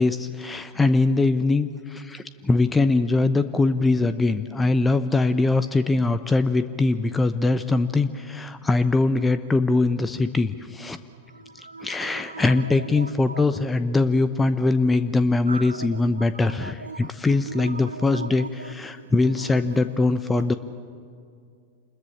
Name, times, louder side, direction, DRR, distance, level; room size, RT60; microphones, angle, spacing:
voice 1, 0.0-11.0 11.8-20.5, left 3 dB, 10° left, 0.8 m, -22 dB
voice 2, 11.3-12.5 13.0-13.4 15.5-16.0 16.6-17.0 17.5-18.5, right 4 dB, 80° right, 0.6 m, -38 dB
27.5 x 21.0 x 7.2 m
figure-of-eight pair, 90°, 0 cm